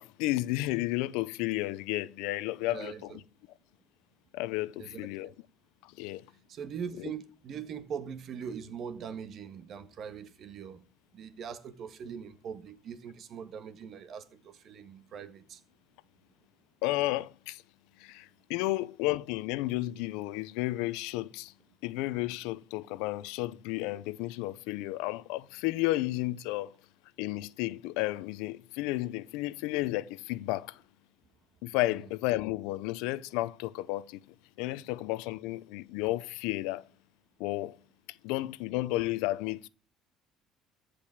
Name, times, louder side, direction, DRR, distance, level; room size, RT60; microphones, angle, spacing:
voice 1, 0.0-3.2 4.3-5.3 5.8-6.2 16.8-17.6 18.0-21.5 21.8-26.7 27.2-30.8 31.6-34.2 34.6-36.8 37.4-37.8 38.1-39.7, left 18 dB, 85° left, 0.6 m, -32 dB
voice 2, 2.7-3.2 4.8-5.3 6.5-10.8 11.1-15.6, right 7 dB, 50° right, 1.6 m, -41 dB
14.5 x 5.1 x 8.8 m
cardioid pair, 115°, 0 cm